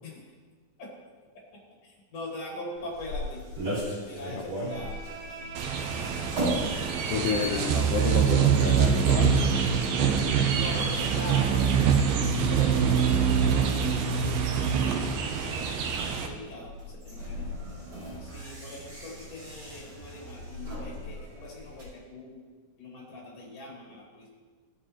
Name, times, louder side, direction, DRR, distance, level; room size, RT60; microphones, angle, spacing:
voice 1, 1.8-3.4 4.1-5.0 9.3-9.9 10.3-12.1 12.4-15.0 15.4-17.6 18.2-22.4 22.8-24.3, left 1 dB, 50° left, -3 dB, 3.0 m, -42 dB
sound 1, 2.8-21.9, equal, 45° right, 3.9 m, -39 dB
Bowed string instrument, 4.6-11.0, right 4 dB, 70° right, 2.3 m, -44 dB
sound 2, 5.6-16.3, right 7 dB, 85° right, 2.5 m, -25 dB
voice 2, 7.1-9.5, left 7 dB, 85° left, 3 dB, 1.9 m, -29 dB
14.0 x 6.8 x 3.0 m, 1.5 s
omnidirectional pair, 4.1 m